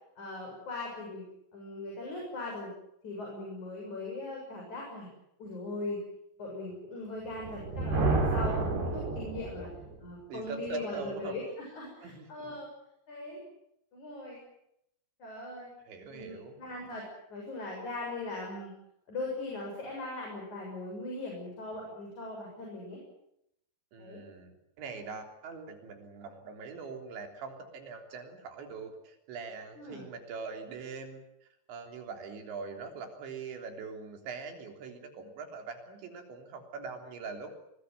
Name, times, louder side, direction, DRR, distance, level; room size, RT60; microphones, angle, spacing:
voice 1, 0.2-1.2 1.5-2.7 3.0-5.1 5.4-6.0 6.4-9.7 10.0-12.7 13.1-13.4 13.9-14.4 15.2-15.7 16.1-17.0 17.3-18.7 19.1-23.0 24.0-24.2 29.8-30.1, left 2 dB, 40° left, -1 dB, 8.5 m, -39 dB
Thunder, 7.3-10.0, right 2 dB, 65° right, 6.8 m, -30 dB
voice 2, 10.3-11.4 12.0-12.6 15.9-16.6 23.9-31.2 31.7-37.5, right 4 dB, 80° right, 5 dB, 5.8 m, -42 dB
25.5 x 21.0 x 9.4 m, 0.79 s
omnidirectional pair, 5.1 m